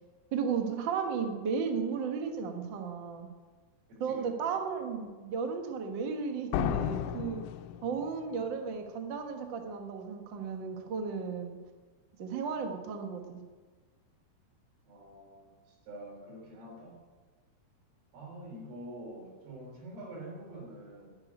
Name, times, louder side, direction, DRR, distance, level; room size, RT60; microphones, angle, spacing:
voice 1, 0.3-3.3 4.0-7.4 7.8-11.6 12.2-13.4, right 6 dB, 75° right, 4 dB, 1.0 m, -34 dB
voice 2, 3.9-4.3 14.9-15.5 15.9-17.0 18.1-21.1, right 1 dB, 90° right, -1 dB, 5.3 m, -46 dB
sound 1, 6.5-8.3, left 12 dB, 85° left, 2.5 m, -33 dB
10.0 x 8.7 x 9.6 m, 1.4 s
omnidirectional pair, 4.4 m